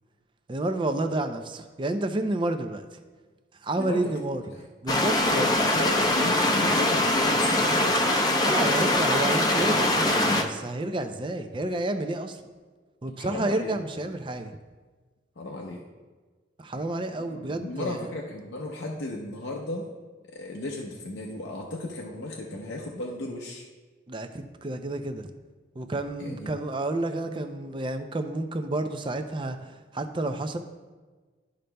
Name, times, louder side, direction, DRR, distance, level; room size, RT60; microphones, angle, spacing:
voice 1, 0.5-2.8 3.6-4.4 4.8-5.5 8.4-12.4 13.0-14.5 16.6-18.1 24.1-25.3 25.8-30.6, right 2 dB, 25° right, 8 dB, 0.4 m, -30 dB
voice 2, 3.8-4.1 4.5-4.7 5.2-8.0 13.2-13.8 15.4-15.8 17.3-19.9 20.3-23.6 26.2-26.5, left 2 dB, 80° left, -1 dB, 0.7 m, -35 dB
sound 1, 4.9-10.4, left 1 dB, 20° left, 0.5 m, -23 dB
12.5 x 5.2 x 2.2 m, 1.4 s
head